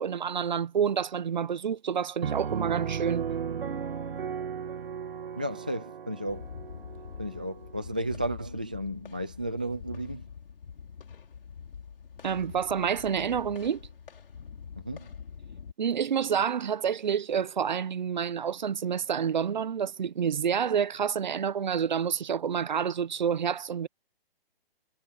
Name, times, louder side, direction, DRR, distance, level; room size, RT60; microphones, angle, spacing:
voice 1, 0.0-3.3 12.2-13.8 15.8-23.9, right 7 dB, 50° right, 0.9 m, -28 dB
Piano, 2.2-7.8, right 7 dB, 65° right, 2.8 m, -35 dB
voice 2, 5.4-6.4 7.2-10.2 14.8-15.1, right 1 dB, 10° right, 0.4 m, -33 dB
sound 1, 6.3-15.7, left 6 dB, 65° left, 5.2 m, -45 dB
hypercardioid pair, 175°, 30 cm